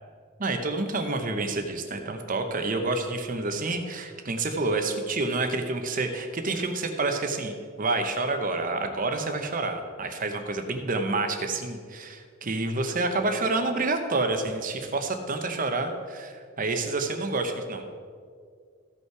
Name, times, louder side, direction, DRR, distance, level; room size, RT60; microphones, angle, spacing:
voice 1, 0.4-17.8, right 3 dB, 40° right, 5 dB, 0.9 m, -28 dB
15.0 x 5.6 x 4.7 m, 2.1 s
head